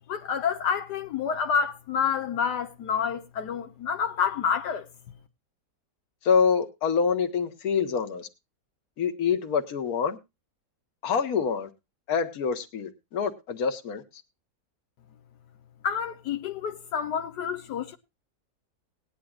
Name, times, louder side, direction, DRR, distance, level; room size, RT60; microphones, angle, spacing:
voice 1, 0.1-4.9 15.8-18.0, left 7 dB, 80° left, 1.5 m, -28 dB
voice 2, 6.2-8.3 9.0-10.2 11.0-11.7 12.1-14.0, left 6 dB, 65° left, 1.6 m, -26 dB
19.0 x 10.0 x 2.4 m
omnidirectional pair, 1.8 m